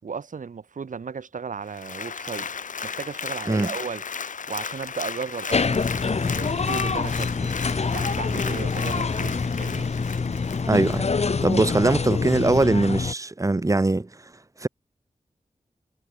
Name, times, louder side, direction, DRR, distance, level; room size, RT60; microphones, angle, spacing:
voice 1, 0.0-2.5 2.8-4.1 4.5-7.5 7.9-9.9, right 5 dB, 85° right, 6.6 m, -35 dB
Applause, 1.7-11.4 11.9-12.0, left 6 dB, 80° left, 2.1 m, -35 dB
sound 1, 5.5-13.1, left 4 dB, 55° left, 2.8 m, -26 dB
voice 2, 10.7-14.2 14.6-14.7, right 2 dB, 25° right, 2.5 m, -22 dB
wide cardioid pair, 115°, 13 cm